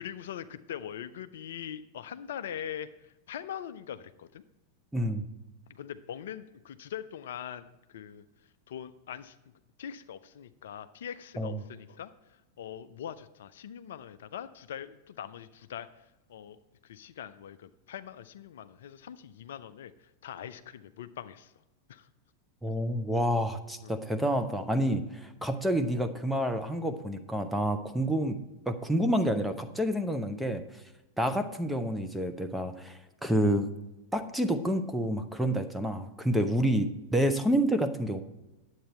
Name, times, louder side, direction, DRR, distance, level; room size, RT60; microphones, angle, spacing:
voice 1, 0.0-4.4 5.7-8.2 8.7-9.4 9.8-16.6 16.8-19.9 20.2-21.5 21.9-22.1 23.8-23.9, left 9 dB, 60° left, 12 dB, 0.4 m, -42 dB
voice 2, 4.9-5.2 11.4-11.6 22.6-28.4 28.7-30.6 31.2-33.7 34.1-38.2, equal, 5° right, 8 dB, 0.7 m, -28 dB
10.0 x 8.0 x 4.3 m, 1.0 s
figure-of-eight pair, 90°, 0 cm